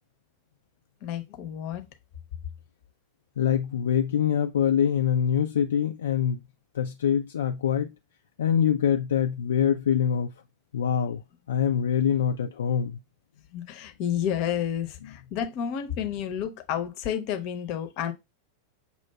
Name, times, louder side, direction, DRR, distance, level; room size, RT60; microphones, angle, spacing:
voice 1, 1.0-1.8 13.5-18.1, left 9 dB, 45° left, 0.7 m, -30 dB
voice 2, 3.4-6.4 6.7-7.9 8.4-10.3 10.7-11.2 11.5-13.0, left 8 dB, 65° left, 0.3 m, -24 dB
6.7 x 2.5 x 2.2 m
figure-of-eight pair, 90°, 0 cm